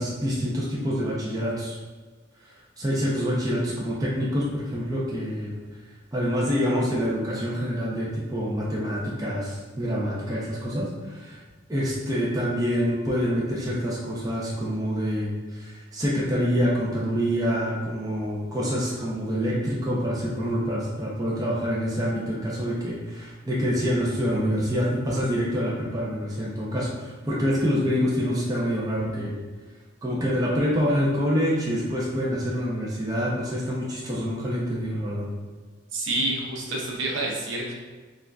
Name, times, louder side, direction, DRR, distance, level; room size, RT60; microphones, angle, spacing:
voice 1, 0.0-1.8 2.4-5.5 6.1-11.4 11.7-29.4 30.0-35.3, equal, 20° right, -5 dB, 0.6 m, -26 dB
voice 2, 35.9-37.7, right 2 dB, 75° right, -2 dB, 0.8 m, -28 dB
6.3 x 2.4 x 2.3 m, 1.4 s
head